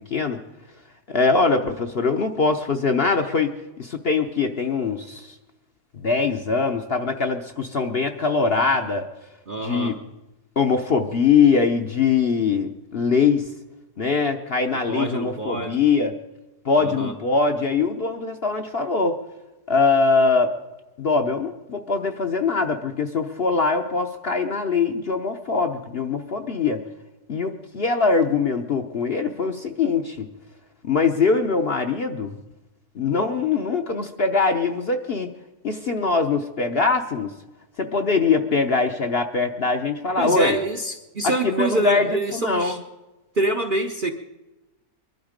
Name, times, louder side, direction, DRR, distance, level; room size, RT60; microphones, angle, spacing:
voice 1, 1.1-5.4 5.9-9.1 9.6-10.0 10.6-13.5 14.0-16.1 16.6-19.2 19.7-20.5 21.0-26.8 27.3-30.3 30.8-32.3 33.0-35.3 35.6-37.3 37.8-40.6 41.2-42.8, left 4 dB, 50° left, 5 dB, 0.8 m, -22 dB
voice 2, 9.5-10.0 14.9-15.8 16.8-17.1 40.2-42.8 43.3-44.1, right 2 dB, 45° right, 6 dB, 0.7 m, -25 dB
22.5 x 12.0 x 5.1 m, 1.1 s
omnidirectional pair, 1.7 m